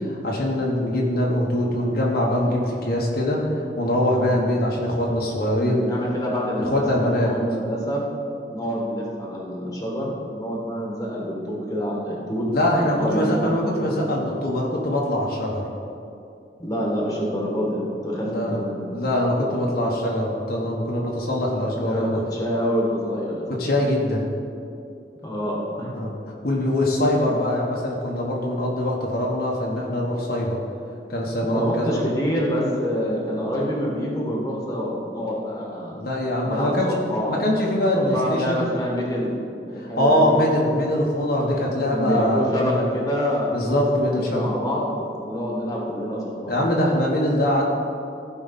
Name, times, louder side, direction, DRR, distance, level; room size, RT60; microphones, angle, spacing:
voice 1, 0.0-5.8 6.6-7.3 12.5-15.7 18.2-18.6 18.9-22.2 23.5-24.2 25.9-26.1 26.4-30.6 31.1-32.0 35.9-36.9 37.3-38.7 39.8-42.7 43.5-44.5 46.5-47.6, left 1 dB, 60° left, -3 dB, 1.2 m, -23 dB
voice 2, 5.6-8.0 8.5-12.5 12.8-14.1 16.6-18.9 21.8-23.6 25.2-25.9 31.4-36.0 36.5-37.5 37.9-40.4 41.9-46.6, equal, 20° left, -3 dB, 1.7 m, -27 dB
15.0 x 5.1 x 4.1 m, 2.7 s
head